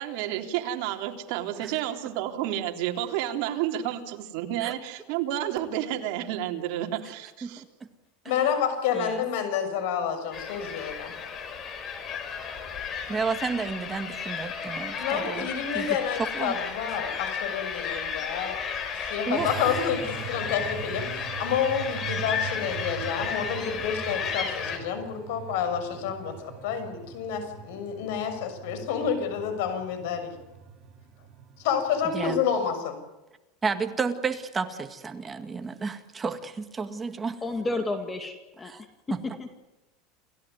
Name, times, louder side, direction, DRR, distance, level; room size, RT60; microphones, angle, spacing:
voice 1, 0.0-7.6, right 12 dB, 60° right, 3 dB, 3.5 m, -30 dB
voice 2, 8.2-11.1 15.0-18.6 18.9-30.3 31.6-33.0, left 7 dB, 70° left, 9 dB, 6.5 m, -29 dB
sound 1, 10.3-24.8, left 6 dB, 30° left, 4.2 m, -33 dB
voice 3, 13.1-16.0 16.3-16.6 19.3-19.8 32.1-32.4 33.6-37.4 38.7-38.8 39.1-39.2, right 5 dB, 15° right, 8 dB, 1.9 m, -32 dB
sound 2, 19.3-32.6, right 8 dB, 35° right, 4.0 m, -42 dB
voice 4, 37.4-39.5, left 2 dB, 15° left, 7 dB, 2.2 m, -32 dB
29.0 x 16.0 x 9.5 m, 1.1 s
supercardioid pair, 155°, 0 cm